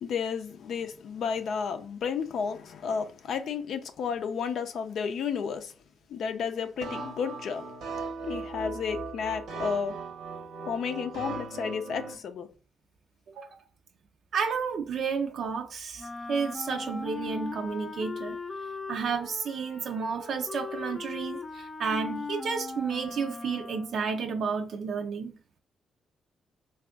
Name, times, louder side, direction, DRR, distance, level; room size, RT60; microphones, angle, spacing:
voice 1, 0.0-5.7 6.1-7.7 8.2-10.0 10.7-12.5, left 6 dB, 75° left, 0.5 m, -32 dB
sound 1, 6.8-12.1, right 4 dB, 85° right, 1.0 m, -38 dB
voice 2, 14.3-18.4 18.9-25.4, right 5 dB, 70° right, 0.5 m, -31 dB
Wind instrument woodwind instrument, 16.0-24.1, left 4 dB, 25° left, 0.5 m, -39 dB
3.4 x 2.4 x 3.6 m
cardioid pair, 100°, 0 cm